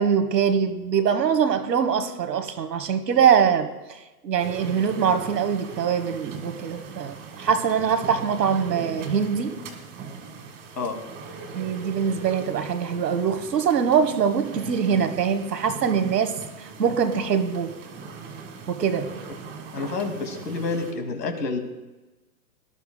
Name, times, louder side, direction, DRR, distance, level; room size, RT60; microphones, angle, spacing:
voice 1, 0.0-9.6 11.5-17.7 18.7-19.1, right 7 dB, 85° right, 9 dB, 1.3 m, -23 dB
sound 1, 4.4-20.9, right 5 dB, 25° right, 1.8 m, -39 dB
voice 2, 19.7-21.6, left 3 dB, 85° left, 5 dB, 2.3 m, -28 dB
18.5 x 12.0 x 2.2 m, 1.1 s
hypercardioid pair, 125°, 48 cm